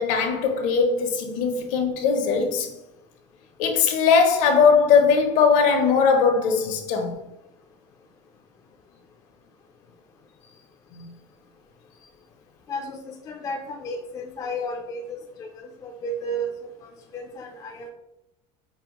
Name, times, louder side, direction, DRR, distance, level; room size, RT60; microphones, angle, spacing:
voice 1, 0.0-2.7 3.6-7.2 10.9-11.0, left 5 dB, 65° left, 0.7 m, -20 dB
voice 2, 12.7-17.9, equal, 25° left, 0.3 m, -33 dB
5.4 x 2.0 x 2.9 m
cardioid pair, 150°, 14 cm